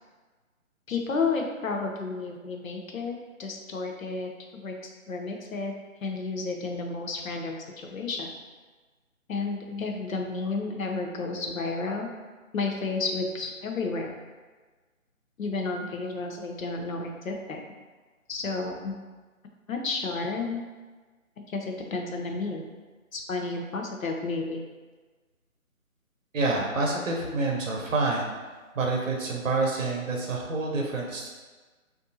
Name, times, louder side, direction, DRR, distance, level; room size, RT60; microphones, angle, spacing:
voice 1, 0.9-5.7 6.0-8.3 9.3-12.1 12.5-14.1 15.4-17.6 18.3-18.9 19.7-20.6 21.5-22.7 23.1-24.6, left 3 dB, 70° left, 2 dB, 0.7 m, -31 dB
voice 2, 26.3-28.3 28.7-31.3, right 3 dB, 65° right, -1 dB, 0.7 m, -27 dB
3.3 x 2.6 x 2.7 m, 1.4 s
figure-of-eight pair, 160°, 42 cm